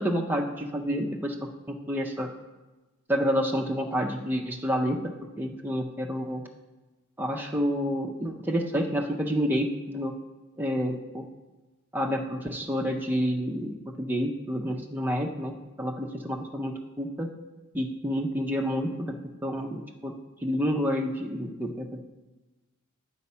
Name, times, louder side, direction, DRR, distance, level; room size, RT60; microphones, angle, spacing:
voice 1, 0.0-2.3 3.1-5.1 5.4-6.4 7.2-10.1 10.6-11.2 11.9-17.3 17.7-19.1 19.4-20.1 20.4-22.0, equal, 10° right, 0 dB, 0.4 m, -29 dB
8.2 x 4.1 x 5.5 m, 1.1 s
head